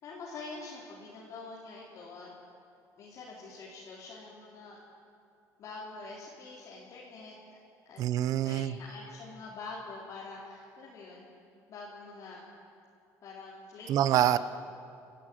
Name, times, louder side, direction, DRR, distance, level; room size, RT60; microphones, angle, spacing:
voice 1, 0.0-2.3 3.0-4.8 5.6-7.6 7.9-8.0 8.4-11.3 11.7-12.4 13.2-14.4, left 3 dB, 50° left, -5 dB, 4.1 m, -45 dB
voice 2, 8.0-8.7 13.9-14.4, right 11 dB, 60° right, 15 dB, 0.9 m, -25 dB
29.5 x 14.0 x 9.4 m, 2.6 s
cardioid pair, 135°, 7 cm